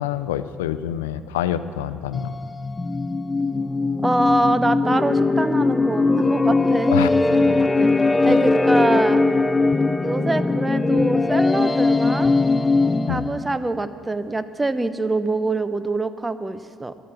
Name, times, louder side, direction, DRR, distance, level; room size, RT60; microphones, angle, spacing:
voice 1, 0.0-2.3 6.9-7.1 8.3-8.4 13.1-13.3, left 11 dB, 85° left, 13 dB, 0.5 m, -26 dB
sound 1, 2.1-13.5, left 3 dB, 20° left, 0.5 m, -20 dB
voice 2, 4.0-9.2 10.0-12.3 13.1-16.9, right 2 dB, 20° right, 12 dB, 0.8 m, -25 dB
13.5 x 12.0 x 6.3 m, 2.3 s
hypercardioid pair, 55°, 0 cm